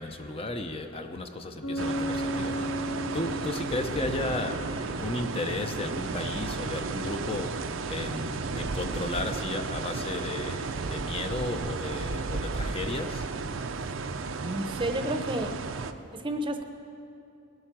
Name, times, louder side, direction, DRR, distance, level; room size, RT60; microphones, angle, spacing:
voice 1, 0.0-2.7 3.1-7.5 7.9-13.2, left 2 dB, 30° left, 6 dB, 0.7 m, -34 dB
Bass guitar, 1.6-5.3, equal, 70° left, 2.4 m, -35 dB
sound 1, 1.8-15.9, right 4 dB, 75° right, 0.6 m, -34 dB
voice 2, 14.4-15.5 16.1-16.6, right 1 dB, 25° right, 6 dB, 0.8 m, -30 dB
19.5 x 8.0 x 6.0 m, 2.7 s
head